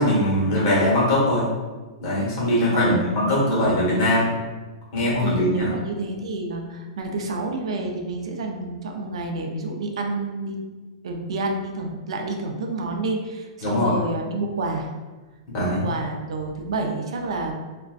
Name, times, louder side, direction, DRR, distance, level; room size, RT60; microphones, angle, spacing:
voice 1, 0.0-1.5 2.0-4.3 4.9-5.7 13.6-14.0 15.4-15.9, left 1 dB, 40° left, -6 dB, 1.1 m, -21 dB
voice 2, 2.7-3.8 5.0-10.6 11.0-14.9 15.6-17.5, right 2 dB, 85° right, 2 dB, 0.4 m, -29 dB
2.5 x 2.1 x 2.3 m, 1.3 s
supercardioid pair, 160°, 3 cm